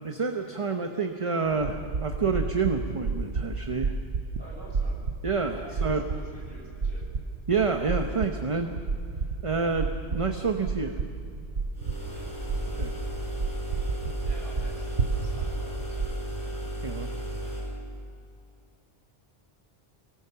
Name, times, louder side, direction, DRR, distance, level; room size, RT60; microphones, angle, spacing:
voice 1, 0.0-4.0 5.2-6.0 7.5-8.7 9.4-11.0 12.7-12.9 16.8-17.1, right 4 dB, 30° right, 5 dB, 1.0 m, -28 dB
sound 1, 1.5-16.1, right 4 dB, 85° right, 1.3 m, -32 dB
voice 2, 4.4-5.0 5.4-7.1 11.9-12.7 14.2-15.7, right 1 dB, 65° right, -4 dB, 7.6 m, -49 dB
sound 2, 11.7-17.8, equal, 20° left, 4.6 m, -35 dB
24.0 x 19.0 x 6.9 m, 2.5 s
omnidirectional pair, 1.1 m